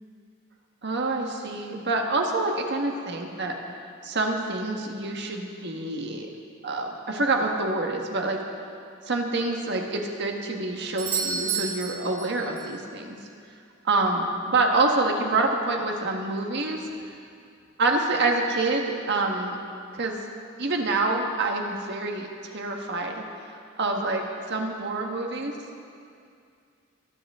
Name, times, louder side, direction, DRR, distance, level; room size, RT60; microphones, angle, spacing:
voice 1, 0.8-3.5 4.0-6.3 6.6-8.4 9.0-13.2 13.8-16.8 17.8-19.6 19.9-20.2 20.6-23.2 23.8-24.2 24.5-25.5, right 2 dB, 55° right, 2 dB, 1.5 m, -26 dB
Doorbell, 11.0-12.8 16.9-17.0, right 6 dB, 85° right, 2.5 m, -31 dB
23.5 x 10.0 x 3.7 m, 2.4 s
head